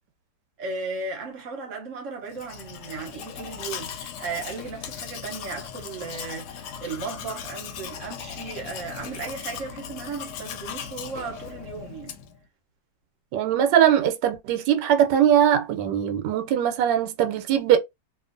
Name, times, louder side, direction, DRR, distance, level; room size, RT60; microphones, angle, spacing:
voice 1, 0.6-12.2, right 4 dB, 55° right, 1.0 m, -36 dB
Domestic sounds home sounds, 2.3-12.4, left 8 dB, 75° left, 1.1 m, -38 dB
voice 2, 13.3-17.8, right 10 dB, 80° right, 1.2 m, -21 dB
2.7 x 2.4 x 2.5 m
omnidirectional pair, 1.9 m